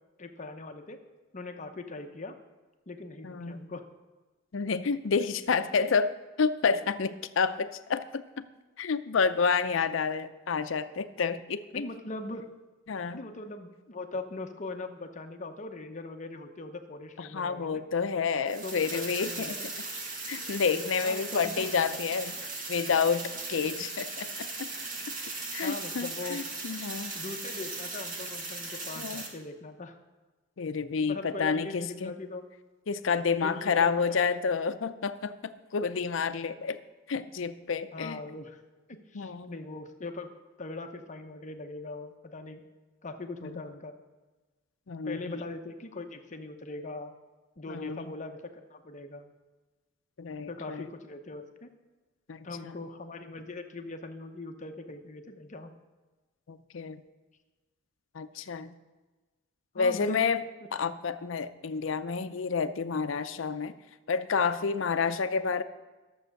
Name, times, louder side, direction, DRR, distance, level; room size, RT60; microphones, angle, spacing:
voice 1, 0.2-1.0 1.3-2.4 2.9-3.8 11.7-12.4 13.1-17.8 18.6-19.7 21.0-21.7 25.6-26.4 27.1-30.0 31.1-32.4 33.3-34.2 37.9-38.6 39.1-40.3 40.6-42.6 43.0-43.9 45.0-47.1 47.6-49.3 50.4-51.7 52.4-55.7 59.7-60.2 60.6-60.7, left 2 dB, 40° left, 6 dB, 0.8 m, -41 dB
voice 2, 3.2-3.6 4.5-6.1 6.4-8.4 8.8-11.8 12.9-13.2 17.2-19.7 20.3-22.4 22.7-24.7 25.5-27.1 29.0-29.3 30.6-32.1 32.9-36.8 37.1-38.2 39.1-39.6 43.4-43.6 44.9-45.5 47.7-48.1 50.2-50.9 52.3-52.9 56.5-57.0 58.1-58.7 59.8-63.7 64.1-65.6, left 5 dB, 70° left, 11 dB, 0.5 m, -29 dB
sound 1, 18.5-29.3, right 3 dB, 45° right, 1.9 m, -38 dB
11.5 x 7.2 x 6.5 m, 1.2 s
head